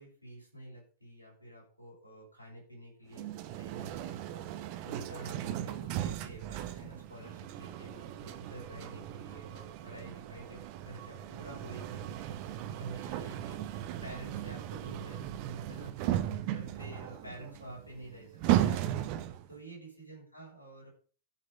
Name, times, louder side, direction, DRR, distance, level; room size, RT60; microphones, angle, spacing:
voice 1, 0.0-15.4 15.7-19.1 19.5-20.9, right 1 dB, 90° right, -3 dB, 6.1 m, -50 dB
sound 1, 3.1-19.5, right 12 dB, 45° right, 1.0 m, -36 dB
13.5 x 6.4 x 5.2 m, 0.40 s
figure-of-eight pair, 90°, 0 cm